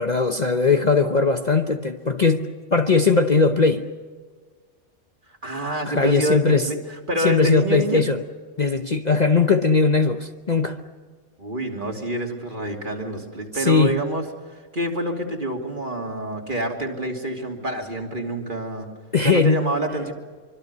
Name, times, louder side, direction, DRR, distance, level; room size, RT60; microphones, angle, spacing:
voice 1, 0.0-3.8 5.9-6.7 7.2-8.2 8.6-10.8 13.5-14.0 19.1-19.6, left 4 dB, 35° left, 5 dB, 1.0 m, -19 dB
voice 2, 5.4-6.8 7.1-8.0 11.4-14.2 14.7-18.9 19.2-20.1, right 1 dB, 40° right, 2 dB, 3.1 m, -27 dB
25.0 x 25.0 x 6.8 m, 1.5 s
omnidirectional pair, 1.3 m